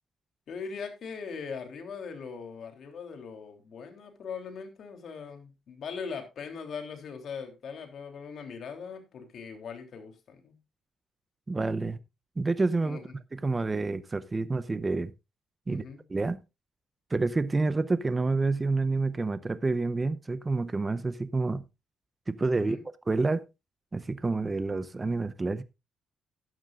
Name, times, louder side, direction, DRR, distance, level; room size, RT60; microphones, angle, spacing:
voice 1, 0.5-10.5 11.8-12.0 12.8-13.1 15.7-16.0 22.5-22.8, left 5 dB, 60° left, 3.3 m, -40 dB
voice 2, 11.5-12.0 12.4-13.0 13.3-15.1 15.7-15.8 16.1-16.4 17.1-21.6 22.3-22.8 23.1-23.4 23.9-25.6, right 3 dB, 25° right, 0.7 m, -28 dB
15.0 x 11.5 x 2.5 m
cardioid pair, 90°, 0 cm